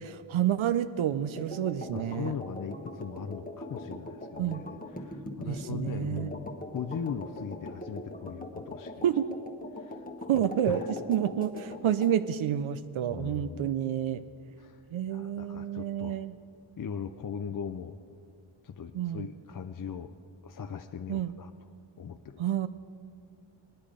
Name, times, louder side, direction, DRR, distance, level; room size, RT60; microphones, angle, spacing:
voice 1, 0.0-2.3 4.4-4.6 5.5-6.3 9.0-9.3 10.3-14.2 14.9-16.3 18.9-19.3 21.1-21.3 22.4-22.7, right 10 dB, 80° right, 12 dB, 0.6 m, -29 dB
sound 1, 1.4-12.2, left 1 dB, 15° left, 1.1 m, -41 dB
voice 2, 1.9-9.0 9.7-10.0 10.3-10.9 13.1-13.7 14.6-14.8 15.1-16.2 16.8-18.0 18.6-20.1 20.4-21.5 22.0-22.5, left 7 dB, 45° left, 7 dB, 0.5 m, -39 dB
18.5 x 10.5 x 5.0 m, 2.3 s
wide cardioid pair, 95°, 48 cm